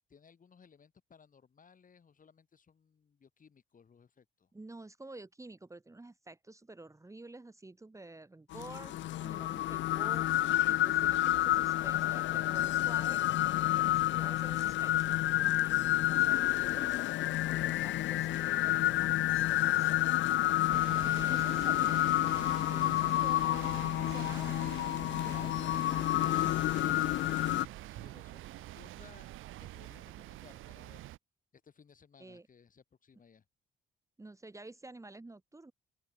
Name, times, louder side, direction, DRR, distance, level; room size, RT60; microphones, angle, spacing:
voice 1, 0.1-4.5 20.9-22.1 22.5-23.4 26.4-29.3 29.6-31.1 31.5-33.5, left 6 dB, 40° left, 5.3 m, -60 dB
voice 2, 4.5-13.2 13.7-20.0 20.9-21.7 22.6-25.7 32.2-32.5 34.2-35.7, right 2 dB, 15° right, 1.8 m, -50 dB
sound 1, 8.5-27.7, left 14 dB, 70° left, 0.5 m, -29 dB
sound 2, 20.7-31.2, right 16 dB, 90° right, 1.6 m, -46 dB
open air
cardioid pair, 90°, 20 cm